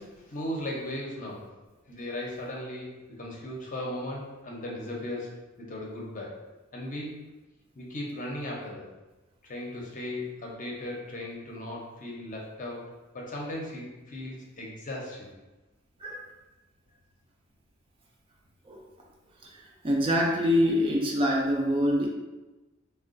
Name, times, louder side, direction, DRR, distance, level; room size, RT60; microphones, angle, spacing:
voice 1, 0.0-1.4 1.9-2.9 3.2-5.3 5.6-6.4 6.7-7.1 7.7-8.9 9.4-12.8 13.1-15.3, left 1 dB, 40° left, -2 dB, 0.6 m, -37 dB
voice 2, 19.8-22.1, equal, 25° right, -1 dB, 0.4 m, -24 dB
3.6 x 2.2 x 2.5 m, 1.1 s
head